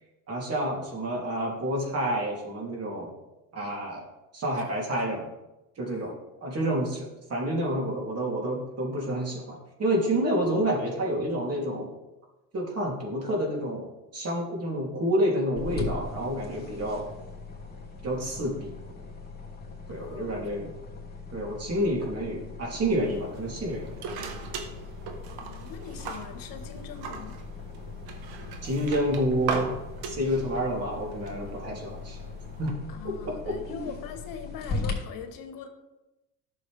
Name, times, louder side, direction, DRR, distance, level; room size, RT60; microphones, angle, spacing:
voice 1, 0.3-3.1 3.5-4.1 4.3-5.3 5.8-6.1 6.4-11.9 12.5-17.1 18.0-18.8 19.9-20.7 21.3-23.9 28.6-29.7 30.1-32.2 32.6-32.8 33.4-33.9, equal, 40° right, -2 dB, 3.2 m, -29 dB
voice 2, 5.9-6.2 19.9-20.3 25.4-27.4 32.9-35.7, left 7 dB, 60° left, 6 dB, 1.5 m, -42 dB
sound 1, 15.5-34.9, left 4 dB, 25° left, 3.0 m, -40 dB
sound 2, 23.0-32.7, right 4 dB, 70° right, 1.6 m, -39 dB
12.0 x 6.9 x 3.5 m, 1.0 s
supercardioid pair, 90°, 39 cm